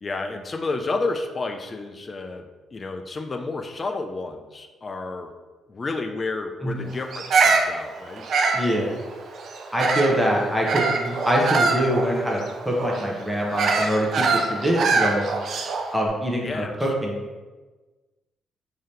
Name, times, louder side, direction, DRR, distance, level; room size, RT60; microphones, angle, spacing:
voice 1, 0.0-5.3 5.7-8.3 16.4-16.9, left 3 dB, 35° left, 5 dB, 0.4 m, -31 dB
Bird vocalization bird call bird song, 7.1-10.2 10.6-15.9, right 4 dB, 60° right, 0.4 m, -23 dB
voice 2, 8.5-9.0 9.7-12.4 12.6-14.1 14.3-15.3 15.9-17.2, equal, ahead, -3 dB, 0.8 m, -24 dB
3.9 x 2.7 x 3.2 m, 1.3 s
cardioid pair, 90°, 0 cm